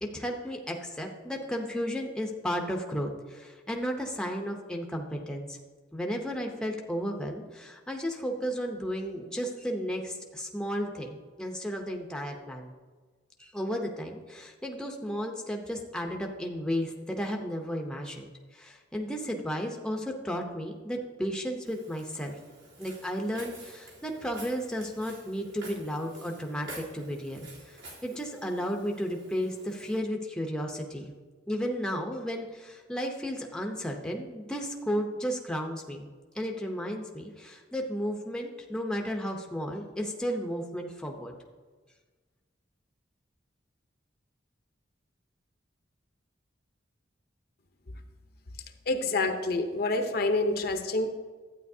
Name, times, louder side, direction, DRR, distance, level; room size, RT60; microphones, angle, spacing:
voice 1, 0.0-5.6 5.9-12.7 13.4-22.4 22.8-31.1 31.5-36.1 36.3-41.3, equal, 5° left, 2 dB, 0.7 m, -33 dB
Walk footsteps, 21.7-30.0, right 1 dB, 85° right, 3.2 m, -49 dB
voice 2, 48.9-51.1, left 2 dB, 55° left, 6 dB, 0.8 m, -27 dB
12.0 x 9.1 x 2.7 m, 1.4 s
head